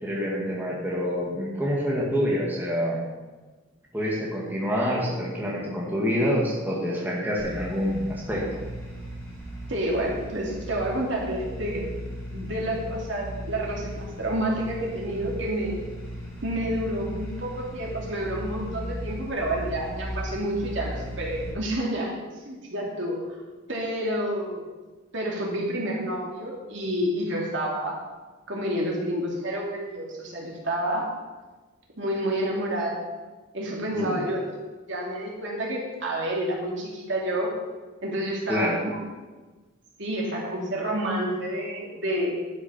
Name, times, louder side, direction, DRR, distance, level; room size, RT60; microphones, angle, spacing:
voice 1, 0.0-3.0 3.9-8.6 33.9-34.3 38.5-38.8, equal, 10° right, -4 dB, 2.0 m, -27 dB
sound 1, 7.4-21.5, equal, 10° left, 4.2 m, -37 dB
voice 2, 9.7-11.9 12.3-15.8 16.4-22.1 22.4-23.2 23.7-24.6 25.1-28.0 28.5-31.1 32.0-33.0 33.5-34.4 34.9-37.5 38.0-39.0 40.0-42.4, right 1 dB, 65° right, -3 dB, 2.6 m, -29 dB
11.5 x 6.7 x 5.6 m, 1.3 s
head